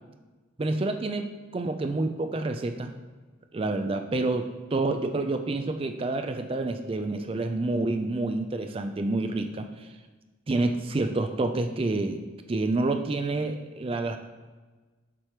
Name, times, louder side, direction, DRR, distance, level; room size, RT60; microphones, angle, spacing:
voice 1, 0.6-2.9 3.5-9.9 10.5-12.2 12.5-14.2, right 2 dB, 25° right, 7 dB, 0.3 m, -28 dB
7.5 x 3.0 x 4.8 m, 1.3 s
head